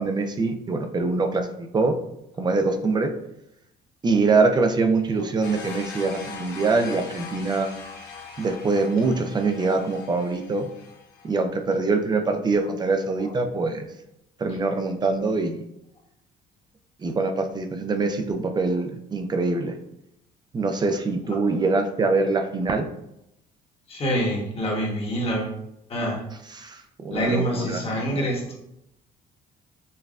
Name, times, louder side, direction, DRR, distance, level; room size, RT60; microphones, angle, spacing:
voice 1, 0.0-1.5 1.7-2.0 2.4-3.1 4.0-7.7 8.4-10.7 11.3-13.9 14.4-15.6 17.0-19.8 20.5-22.8 26.5-27.8, right 3 dB, 25° right, 6 dB, 0.5 m, -24 dB
sound 1, 5.4-11.3, left 5 dB, 80° left, 0.9 m, -40 dB
voice 2, 23.9-25.6 25.9-26.2 27.1-28.5, equal, 35° left, -2 dB, 1.2 m, -26 dB
5.3 x 2.2 x 2.4 m, 0.80 s
cardioid pair, 110°, 17 cm